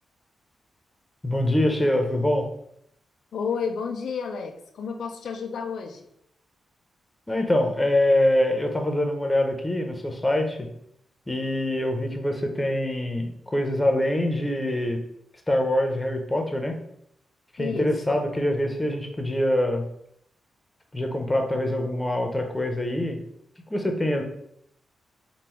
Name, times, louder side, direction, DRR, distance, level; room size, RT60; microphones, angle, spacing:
voice 1, 1.2-2.5 7.3-10.7 11.3-15.0 15.5-16.8 17.5-19.8 20.9-23.2 23.7-24.2, left 1 dB, 15° left, 4 dB, 0.8 m, -24 dB
voice 2, 3.3-6.1 17.6-18.2, left 5 dB, 80° left, 3 dB, 0.4 m, -31 dB
3.7 x 2.3 x 4.5 m, 0.72 s
cardioid pair, 65°, 0 cm